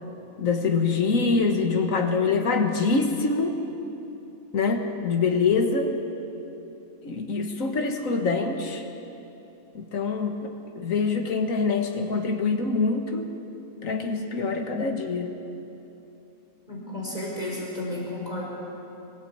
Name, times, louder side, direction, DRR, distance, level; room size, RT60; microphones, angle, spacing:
voice 1, 0.4-3.6 4.5-6.0 7.0-8.9 9.7-10.5 10.8-13.3 13.8-15.3, left 4 dB, 70° left, 4 dB, 2.0 m, -25 dB
voice 2, 16.7-18.4, left 1 dB, 30° left, -4 dB, 5.2 m, -32 dB
24.0 x 17.0 x 8.7 m, 2.9 s
omnidirectional pair, 1.5 m